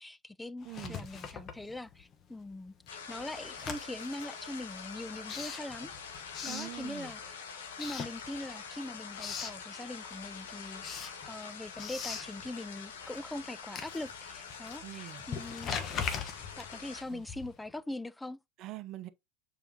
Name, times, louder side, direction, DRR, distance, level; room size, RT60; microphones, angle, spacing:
voice 1, 0.0-5.9 6.4-7.4 7.8-15.7 16.6-18.4, left 1 dB, 5° left, 0.3 m, -42 dB
Writing, 0.6-2.2 2.5-7.3 7.7-8.7 9.0-9.6 10.1-17.7, left 6 dB, 35° left, 1.2 m, -41 dB
voice 2, 0.6-1.1 6.5-7.1 14.8-15.2 17.1-17.2 18.6-19.1, right 16 dB, 45° right, 0.8 m, -44 dB
sound 1, 2.9-17.0, left 6 dB, 80° left, 1.6 m, -45 dB
6.9 x 5.0 x 2.9 m
hypercardioid pair, 95°, 0 cm